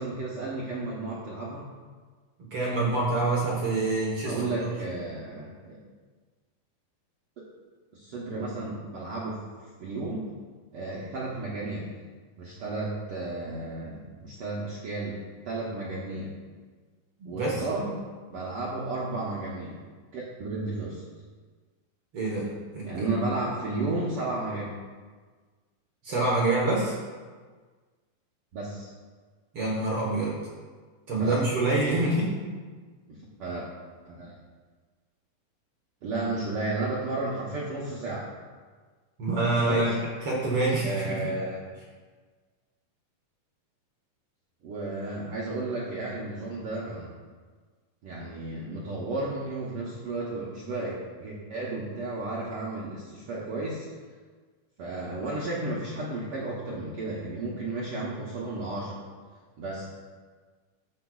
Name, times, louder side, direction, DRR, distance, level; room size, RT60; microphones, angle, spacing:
voice 1, 0.0-1.6 4.2-5.8 7.4-7.5 7.9-9.4 9.8-10.3 10.7-12.0 12.4-16.4 17.2-17.9 18.3-19.8 20.1-21.0 22.8-24.7 28.5-28.9 31.2-31.3 33.1-33.7 34.0-34.4 36.0-38.3 39.6-40.0 40.8-41.6 44.6-47.1 48.0-53.9 54.8-59.0 59.6-59.8, right 2 dB, 90° right, -6 dB, 1.2 m, -33 dB
voice 2, 2.5-4.5 17.2-17.6 22.1-23.2 26.0-26.9 29.5-30.4 31.1-32.3 39.2-39.9 40.2-41.3, right 2 dB, 55° right, -4 dB, 1.6 m, -26 dB
12.0 x 7.8 x 2.4 m, 1.5 s
omnidirectional pair, 4.1 m